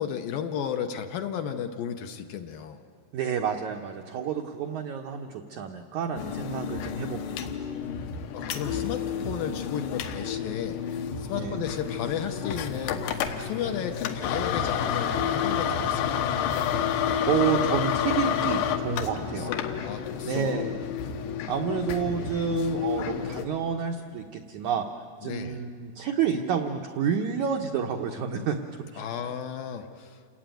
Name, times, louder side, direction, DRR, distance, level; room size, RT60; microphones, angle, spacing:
voice 1, 0.0-2.8 7.9-16.4 19.2-20.7 25.2-25.6 29.0-30.2, left 8 dB, 70° left, 6 dB, 2.4 m, -34 dB
voice 2, 3.1-7.5 11.3-11.6 16.8-19.5 20.2-20.7 21.5-24.9 25.2-28.6 28.9-29.0, right 7 dB, 80° right, 4 dB, 1.7 m, -29 dB
sound 1, 6.2-23.4, left 8 dB, 90° left, 3.3 m, -30 dB
sound 2, 11.6-17.1, left 4 dB, 40° left, 1.0 m, -44 dB
28.5 x 17.5 x 9.1 m, 2.2 s
omnidirectional pair, 4.6 m